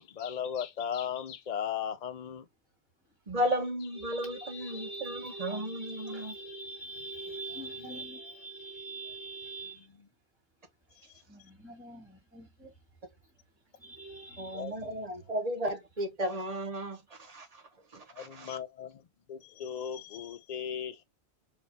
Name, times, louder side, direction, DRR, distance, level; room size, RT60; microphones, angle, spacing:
voice 1, 0.0-2.5 7.5-8.5 9.0-9.2 9.7-10.1 10.9-11.2 14.5-15.0 18.1-19.0 19.3-21.0, left 8 dB, 55° left, 0.5 m, -38 dB
voice 2, 3.3-6.4 14.4-17.6 17.9-18.5, equal, 35° right, 1.1 m, -34 dB
voice 3, 4.0-9.8 11.3-12.7 13.8-14.6, right 2 dB, 5° right, 1.7 m, -43 dB
4.3 x 2.4 x 3.4 m
omnidirectional pair, 1.1 m